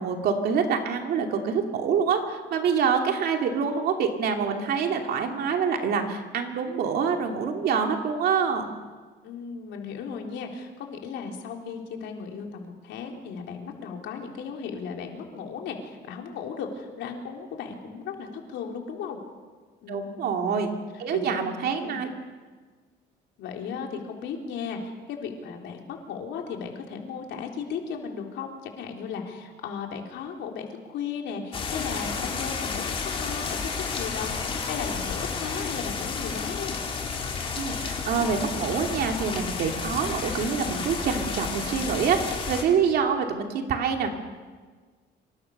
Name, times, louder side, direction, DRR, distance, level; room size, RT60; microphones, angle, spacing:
voice 1, 0.0-8.7 19.9-20.7 21.0-22.1 37.5-44.1, right 6 dB, 60° right, 3 dB, 2.7 m, -26 dB
voice 2, 9.2-19.2 19.8-20.3 21.1-21.5 21.8-22.0 23.4-33.7 34.0-36.8, left 6 dB, 85° left, 2 dB, 3.8 m, -36 dB
sound 1, 31.5-42.6, left 5 dB, 30° left, 3.4 m, -31 dB
26.0 x 25.0 x 6.7 m, 1.5 s
cardioid pair, 180°, 18 cm